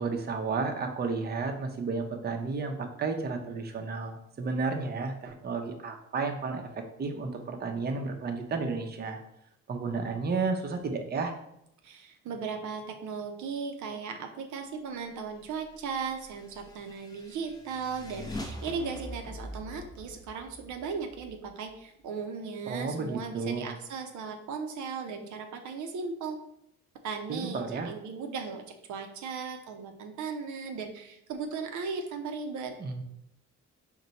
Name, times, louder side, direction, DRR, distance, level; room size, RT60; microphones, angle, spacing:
voice 1, 0.0-6.7 7.0-9.2 9.7-11.3 22.7-23.7 27.3-27.9 32.8-33.0, right 4 dB, 35° right, 4 dB, 0.6 m, -32 dB
voice 2, 11.8-26.4 27.0-28.6 28.9-32.7, right 5 dB, 75° right, 4 dB, 0.6 m, -37 dB
sound 1, 16.2-21.8, left 1 dB, 15° left, 0.5 m, -43 dB
4.3 x 2.2 x 3.9 m, 0.78 s
cardioid pair, 90°, 30 cm